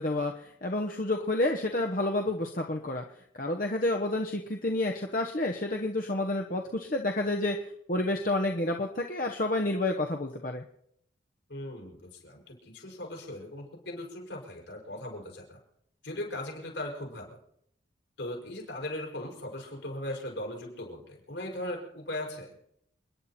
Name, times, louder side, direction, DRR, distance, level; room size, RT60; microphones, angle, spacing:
voice 1, 0.0-3.0 3.4-7.6 7.9-10.6, left 2 dB, 45° left, 2 dB, 1.1 m, -29 dB
voice 2, 11.5-15.6 16.0-17.4 18.2-22.5, left 1 dB, 70° left, 0 dB, 5.7 m, -38 dB
29.0 x 10.5 x 4.3 m, 0.74 s
head